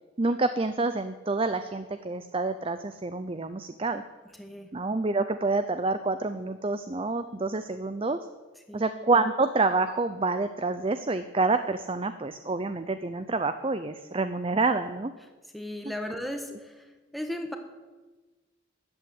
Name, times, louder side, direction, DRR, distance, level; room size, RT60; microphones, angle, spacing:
voice 1, 0.2-4.0 4.7-8.2 8.7-15.1, right 3 dB, 25° right, 10 dB, 0.5 m, -27 dB
voice 2, 4.3-4.7 8.7-8.9 15.5-17.6, left 1 dB, ahead, 4 dB, 1.4 m, -36 dB
13.5 x 8.5 x 9.7 m, 1.2 s
head